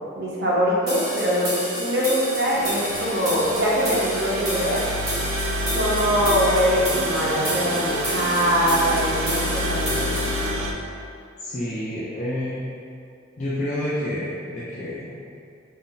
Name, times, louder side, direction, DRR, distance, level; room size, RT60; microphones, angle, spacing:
voice 1, 0.2-4.8 5.7-10.1, equal, 55° right, -6 dB, 0.7 m, -23 dB
sound 1, 0.9-10.5, equal, 20° right, 1.2 m, -30 dB
sound 2, 2.5-10.7, equal, 85° right, 0.3 m, -28 dB
voice 2, 11.4-12.6 13.4-15.2, left 1 dB, 35° left, -9 dB, 0.4 m, -29 dB
2.6 x 2.0 x 3.7 m, 2.4 s
head